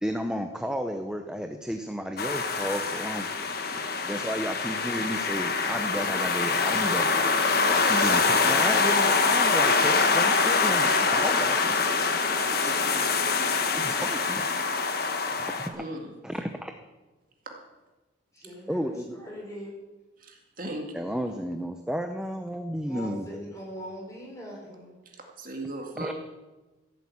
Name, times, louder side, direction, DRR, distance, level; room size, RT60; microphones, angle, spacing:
voice 1, 0.0-3.3 3.7-7.4 7.7-12.8 13.8-14.5 15.3-15.8 16.2-16.7 18.7-19.2 20.9-23.5 26.0-26.1, equal, 5° right, 6 dB, 0.7 m, -33 dB
sound 1, 2.2-15.7, left 4 dB, 50° left, 1.3 m, -24 dB
voice 2, 15.8-16.1 17.5-17.6 20.2-20.9 25.1-26.1, right 1 dB, 45° right, 1 dB, 2.2 m, -37 dB
voice 3, 18.3-19.7 22.8-24.9, equal, 15° left, -3 dB, 5.5 m, -41 dB
15.5 x 8.4 x 8.5 m, 1.2 s
head